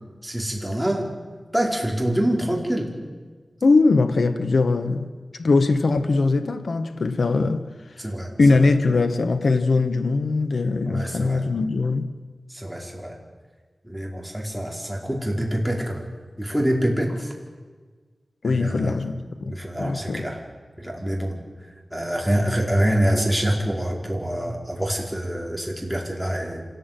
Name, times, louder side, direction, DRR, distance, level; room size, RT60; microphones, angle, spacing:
voice 1, 0.2-1.1 1.5-2.9 8.0-8.3 10.8-11.4 12.5-13.2 13.8-16.1 16.4-17.3 18.4-19.1 19.5-20.4 20.8-21.4 21.9-26.6, right 1 dB, ahead, 4.9 m, -25 dB
voice 2, 3.6-5.1 5.4-7.7 8.4-12.1 18.4-20.3, left 3 dB, 75° left, 1.4 m, -21 dB
26.5 x 18.0 x 9.3 m
wide cardioid pair, 95°, 0 cm